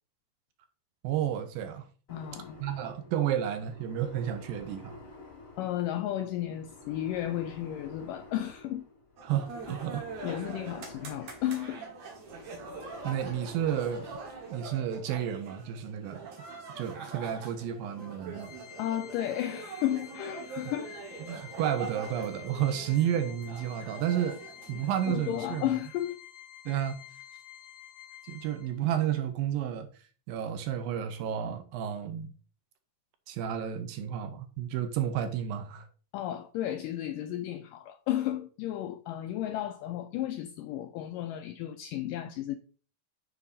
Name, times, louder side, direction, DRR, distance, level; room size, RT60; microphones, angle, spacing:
voice 1, 1.0-1.8 2.6-5.0 9.2-10.1 13.0-14.1 14.5-16.5 16.8-18.5 21.3-24.4 24.7-25.7 26.7-27.0 28.3-29.9 30.3-32.3 33.3-35.9, right 10 dB, 75° right, 2.3 m, -31 dB
voice 2, 2.1-2.6 5.6-8.8 9.7-9.8 10.2-11.8 18.8-20.9 24.7-26.2 36.1-42.6, left 12 dB, 85° left, 1.9 m, -33 dB
sound 1, 2.1-14.6, left 2 dB, 30° left, 1.7 m, -50 dB
sound 2, 9.2-24.9, right 4 dB, 60° right, 2.3 m, -44 dB
Organ, 18.4-29.0, left 11 dB, 65° left, 2.0 m, -50 dB
8.6 x 6.9 x 2.7 m
omnidirectional pair, 4.4 m